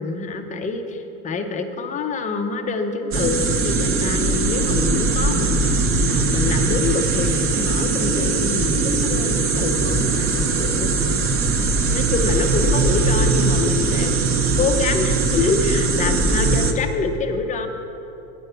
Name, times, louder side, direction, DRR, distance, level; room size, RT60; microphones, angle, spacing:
voice 1, 0.0-11.0 11.6-14.1 14.6-17.7, left 4 dB, 20° left, 6 dB, 0.4 m, -26 dB
sound 1, 3.1-16.7, right 3 dB, 30° right, 0.6 m, -20 dB
9.1 x 5.5 x 6.7 m, 2.9 s
supercardioid pair, 130°, 45 cm